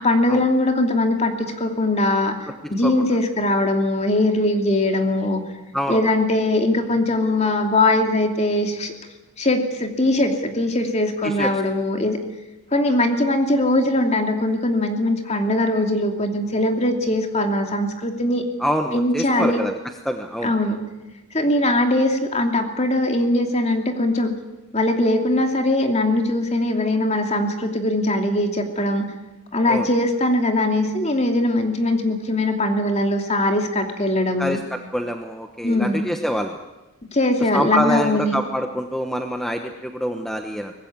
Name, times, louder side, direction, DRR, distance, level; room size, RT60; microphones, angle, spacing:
voice 1, 0.0-2.4 2.7-5.4 5.9-8.9 9.4-12.2 12.7-18.5 18.9-19.6 20.4-20.8 21.3-24.3 24.7-29.1 29.5-34.6 35.6-36.1 37.1-38.4, left 1 dB, 30° left, 4 dB, 2.7 m, -21 dB
voice 2, 5.7-6.1 11.2-11.5 18.6-19.7 20.0-20.5 29.7-29.9 34.4-36.6 37.4-40.7, equal, ahead, 4 dB, 1.1 m, -26 dB
23.5 x 19.5 x 9.6 m, 1.1 s
head